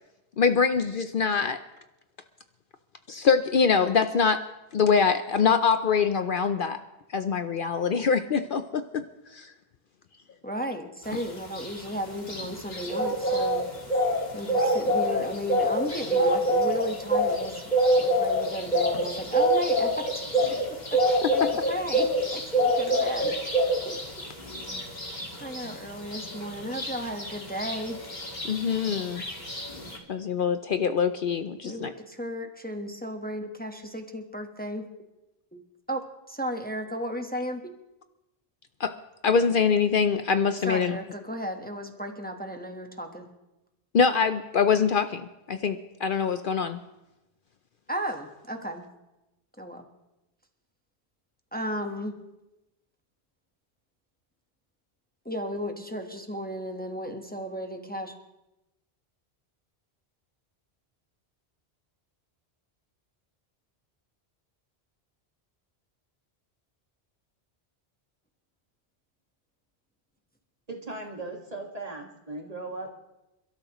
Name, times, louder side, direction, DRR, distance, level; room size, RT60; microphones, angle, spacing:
voice 1, 0.4-1.6 3.1-4.4 4.7-6.8 7.1-9.0 9.3-9.5 21.2-21.3 28.4-29.2 30.1-31.9 38.8-38.9 39.2-41.0 43.9-46.8, left 6 dB, 60° left, 9 dB, 0.7 m, -24 dB
voice 2, 10.4-13.6 14.3-20.1 20.9-23.3 23.8-24.3 25.4-28.0 31.6-34.9 35.5-35.6 35.9-37.7 40.6-43.3 47.9-48.9 49.6-49.9 51.5-52.2 55.2-58.1, equal, 10° left, 4 dB, 1.2 m, -34 dB
sound 1, 11.1-30.0, equal, 40° left, 2.2 m, -26 dB
voice 3, 70.7-73.0, right 2 dB, 35° right, 1 dB, 1.9 m, -38 dB
28.5 x 13.0 x 3.0 m, 0.97 s
omnidirectional pair, 1.1 m